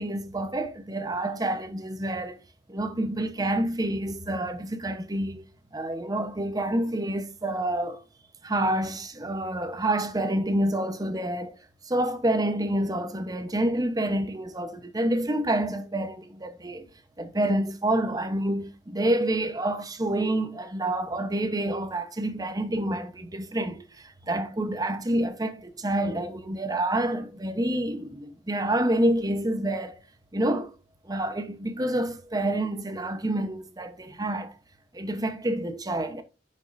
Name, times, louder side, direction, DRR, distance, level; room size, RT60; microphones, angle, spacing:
voice 1, 0.0-2.4 2.7-5.5 5.7-8.0 8.4-11.6 11.9-16.9 17.2-30.0 30.3-30.7 31.0-34.6 34.9-36.2, right 1 dB, 20° right, 0.9 m, -28 dB
10.5 x 5.4 x 2.6 m
head